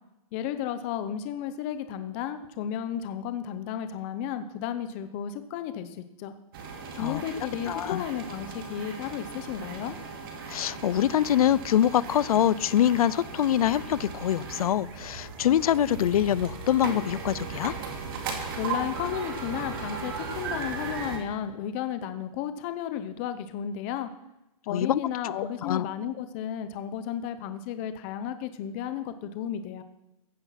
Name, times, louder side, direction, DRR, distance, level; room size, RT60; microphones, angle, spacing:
voice 1, 0.3-6.3 6.9-10.0 18.6-24.1 24.7-29.8, left 9 dB, 20° left, 10 dB, 0.7 m, -33 dB
sound 1, 6.5-21.2, right 5 dB, 40° right, 2.4 m, -37 dB
voice 2, 7.7-8.0 10.5-17.7 24.7-25.0 25.6-25.8, left 11 dB, 85° left, 20 dB, 0.5 m, -24 dB
15.5 x 10.0 x 5.7 m, 0.94 s
hypercardioid pair, 180°, 18 cm